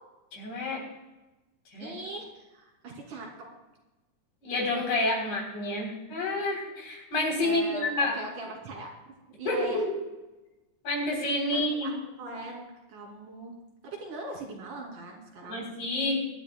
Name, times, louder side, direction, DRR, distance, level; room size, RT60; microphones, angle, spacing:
voice 1, 0.3-0.8 1.7-1.9 4.4-8.2 9.5-10.0 10.8-11.9 15.5-16.2, left 2 dB, 70° left, -1 dB, 5.1 m, -29 dB
voice 2, 1.8-3.3 7.4-9.8 11.5-11.9 12.2-13.5 13.8-15.6, right 2 dB, 85° right, -2 dB, 4.5 m, -41 dB
22.5 x 11.5 x 2.3 m, 1.1 s
omnidirectional pair, 3.6 m